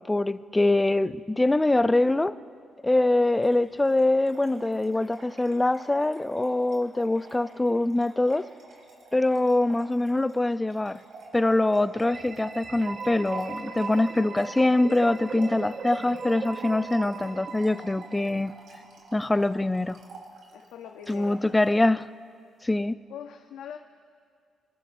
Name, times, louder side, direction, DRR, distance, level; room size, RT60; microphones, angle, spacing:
voice 1, 0.0-2.4 2.8-8.5 9.1-11.0 11.3-18.5 19.1-20.0 21.1-22.1 22.6-23.0, left 2 dB, 15° left, 14 dB, 0.4 m, -24 dB
Trickle dribble / Fill (with liquid), 3.3-21.8, right 3 dB, 65° right, 3.8 m, -49 dB
sound 1, 12.1-18.8, right 4 dB, 45° right, 0.9 m, -38 dB
voice 2, 20.5-21.4 23.1-23.8, left 9 dB, 85° left, 5 dB, 0.6 m, -41 dB
26.0 x 14.5 x 2.6 m, 2.2 s
cardioid pair, 90°, 0 cm